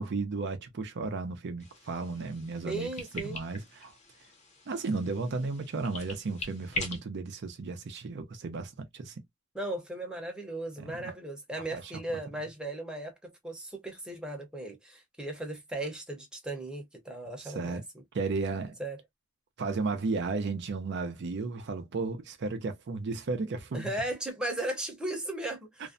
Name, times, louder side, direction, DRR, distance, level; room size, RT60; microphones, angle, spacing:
voice 1, 0.0-2.9 3.1-3.9 4.7-9.2 10.8-11.1 11.7-11.9 17.4-17.8 18.1-18.8 19.6-23.9, right 3 dB, 60° right, 0.5 m, -34 dB
sound 1, 1.6-7.0, left 3 dB, 35° left, 0.7 m, -42 dB
voice 2, 2.6-3.4 9.5-17.8 18.8-19.0 23.7-25.9, right 1 dB, 5° right, 0.7 m, -36 dB
2.5 x 2.1 x 2.5 m
head